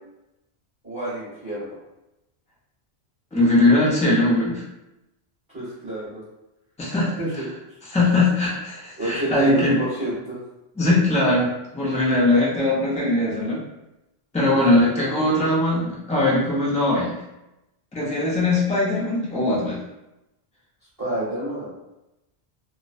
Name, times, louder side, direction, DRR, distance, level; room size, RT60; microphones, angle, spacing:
voice 1, 0.8-1.7 5.5-6.2 7.2-7.5 9.0-10.4 14.5-15.5 21.0-21.7, right 1 dB, 20° right, -10 dB, 1.0 m, -29 dB
voice 2, 3.3-4.6 6.8-7.4 7.9-9.8 10.8-13.6 14.3-17.2 17.9-19.8, left 2 dB, 10° left, -6 dB, 0.3 m, -20 dB
2.5 x 2.1 x 2.4 m, 0.94 s
omnidirectional pair, 1.1 m